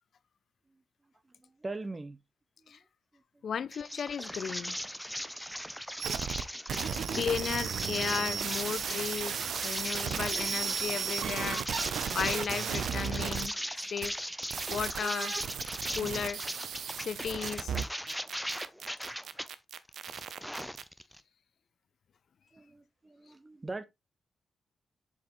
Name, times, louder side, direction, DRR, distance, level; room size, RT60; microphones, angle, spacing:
voice 1, 1.4-2.2 2.6-2.8 22.5-23.8, right 2 dB, 30° right, 1.0 m, -41 dB
voice 2, 3.4-4.8 7.1-11.7 12.1-13.6 13.9-14.1 14.7-15.3 15.9-16.4 17.0-17.8, left 7 dB, 65° left, 0.4 m, -35 dB
sound 1, 3.7-19.5 19.9-21.2, equal, ahead, 0.6 m, -39 dB
sound 2, 6.0-6.4 6.7-13.5 14.0-14.1 14.4-20.8, right 7 dB, 75° right, 0.6 m, -35 dB
7.2 x 5.1 x 3.0 m
cardioid pair, 60°, 0 cm